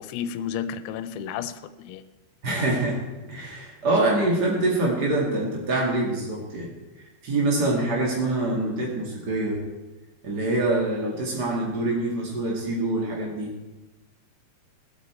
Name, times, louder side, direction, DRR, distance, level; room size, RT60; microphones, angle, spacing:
voice 1, 0.0-2.0, left 8 dB, 90° left, 11 dB, 3.0 m, -32 dB
voice 2, 2.4-3.0 3.3-6.7 7.2-9.6 10.2-13.5, right 2 dB, 50° right, -3 dB, 1.1 m, -25 dB
19.0 x 8.3 x 4.4 m, 1.2 s
omnidirectional pair, 5.4 m